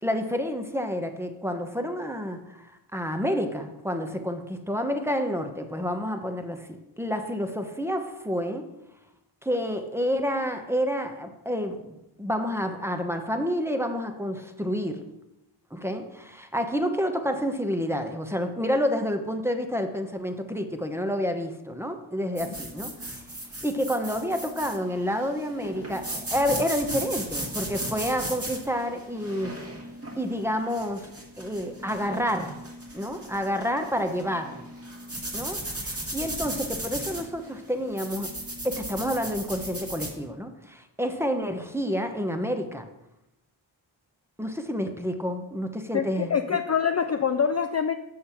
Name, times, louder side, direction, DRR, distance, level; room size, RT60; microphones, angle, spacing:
voice 1, 0.0-8.7 9.4-15.0 15.7-23.1 23.6-29.7 30.2-32.6 32.9-34.6 35.3-38.3 38.6-42.9 44.4-46.6, equal, 5° right, 6 dB, 1.0 m, -29 dB
sound 1, 22.4-40.2, right 1 dB, 30° right, 1.9 m, -36 dB
voice 2, 45.9-47.9, left 7 dB, 35° left, 8 dB, 0.4 m, -25 dB
6.6 x 6.6 x 5.8 m, 0.89 s
wide cardioid pair, 70°, 48 cm